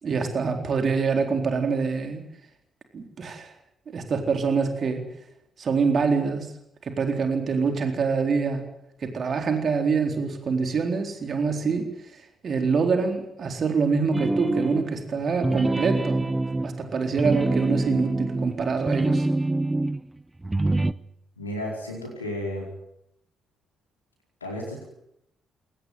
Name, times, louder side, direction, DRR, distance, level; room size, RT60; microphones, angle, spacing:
voice 1, 0.0-2.2 2.9-3.5 3.9-5.1 5.6-6.5 6.8-8.6 9.0-11.9 12.4-16.3 16.6-19.3, right 5 dB, 45° right, 5 dB, 4.0 m, -25 dB
sound 1, 14.1-15.0 15.4-20.0 20.4-20.9, right 2 dB, 15° right, 1.0 m, -25 dB
voice 2, 21.4-22.7 24.4-24.8, left 1 dB, 85° left, -1 dB, 4.6 m, -33 dB
23.0 x 19.0 x 9.5 m, 0.77 s
figure-of-eight pair, 40°, 0 cm